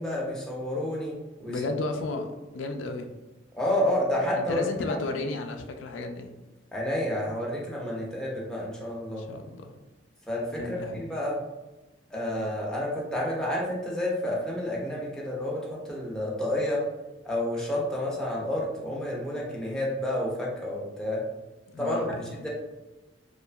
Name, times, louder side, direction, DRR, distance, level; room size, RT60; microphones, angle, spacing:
voice 1, 0.0-1.6 2.1-2.2 3.6-5.0 6.7-9.3 10.3-11.4 12.1-16.9 17.2-21.2 21.8-22.0 22.3-22.5, left 1 dB, 5° left, -4 dB, 0.5 m, -30 dB
voice 2, 1.5-2.3 2.5-3.1 4.4-6.3 9.2-9.7 10.6-11.0 21.7-22.3, left 3 dB, 80° left, 5 dB, 0.3 m, -33 dB
2.8 x 2.4 x 2.2 m, 1.1 s
head